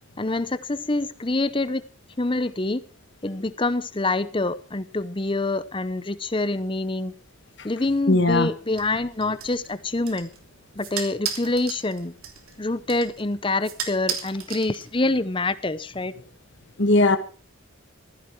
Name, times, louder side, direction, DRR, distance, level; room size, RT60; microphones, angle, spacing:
voice 1, 0.2-1.8 2.2-2.8 3.2-7.1 7.6-10.3 10.8-12.1 12.6-16.1, left 2 dB, 25° left, 0.8 m, -26 dB
voice 2, 8.1-8.5 16.8-17.2, left 2 dB, 60° left, 1.5 m, -18 dB
sound 1, 8.8-15.2, right 8 dB, 90° right, 3.1 m, -36 dB
16.0 x 14.5 x 4.6 m
head